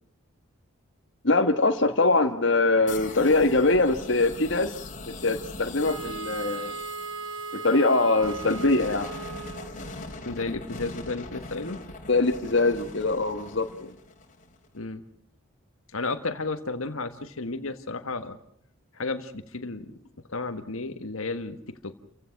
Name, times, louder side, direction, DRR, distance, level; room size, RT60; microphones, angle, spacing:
voice 1, 1.2-4.9 5.2-6.7 7.5-9.1 12.1-13.9, left 2 dB, 60° left, 6 dB, 1.6 m, -23 dB
sound 1, 2.9-14.7, left 2 dB, 40° left, 2.9 m, -41 dB
Wind instrument woodwind instrument, 5.8-9.9, right 4 dB, 85° right, 4.8 m, -37 dB
voice 2, 10.2-11.8 14.7-15.0 15.9-18.4 18.9-19.9 20.3-21.9, left 3 dB, 85° left, 8 dB, 1.6 m, -33 dB
30.0 x 16.0 x 5.9 m, 0.70 s
head